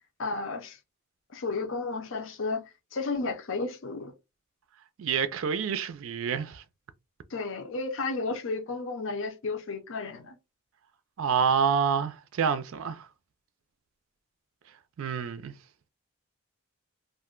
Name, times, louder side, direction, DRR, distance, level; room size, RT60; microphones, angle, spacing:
voice 1, 0.2-0.8 1.3-2.6 2.9-4.1 7.3-10.4, left 3 dB, 60° left, 0.6 m, -32 dB
voice 2, 5.0-6.6 11.2-13.1 15.0-15.5, right 6 dB, 70° right, 0.4 m, -27 dB
2.5 x 2.1 x 3.6 m
head